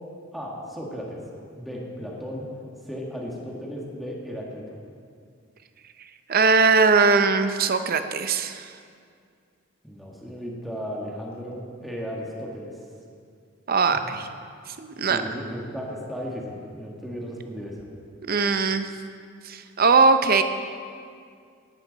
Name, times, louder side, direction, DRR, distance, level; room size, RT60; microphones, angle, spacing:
voice 1, 0.3-1.2 1.5-2.5 2.9-4.7 9.8-12.7 13.9-14.1 15.1-17.8, equal, ahead, -3 dB, 1.7 m, -35 dB
voice 2, 6.3-8.7 13.7-14.3 14.7-15.2 18.3-18.9 19.4-20.4, right 4 dB, 45° right, 9 dB, 0.7 m, -20 dB
16.5 x 11.5 x 4.1 m, 2.3 s
head